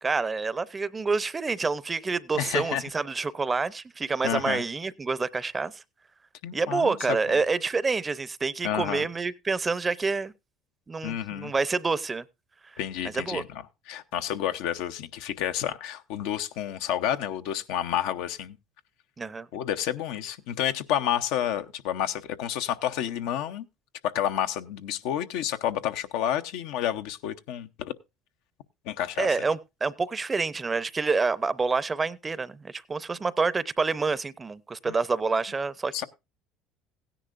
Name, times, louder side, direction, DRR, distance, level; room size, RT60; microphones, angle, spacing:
voice 1, 0.0-5.8 6.5-10.3 10.9-12.2 12.6-12.8 13.1-13.4 19.2-19.5 29.2-36.0, right 4 dB, 25° right, 0.6 m, -28 dB
voice 2, 2.3-2.8 4.2-4.6 6.4-7.0 8.6-9.0 11.0-11.5 12.8-13.6 13.9-18.6 19.5-23.7 24.0-27.9 28.8-29.3 34.9-35.0 35.9-36.0, left 10 dB, 75° left, 0.7 m, -30 dB
16.0 x 10.0 x 2.5 m
hypercardioid pair, 80°, 0 cm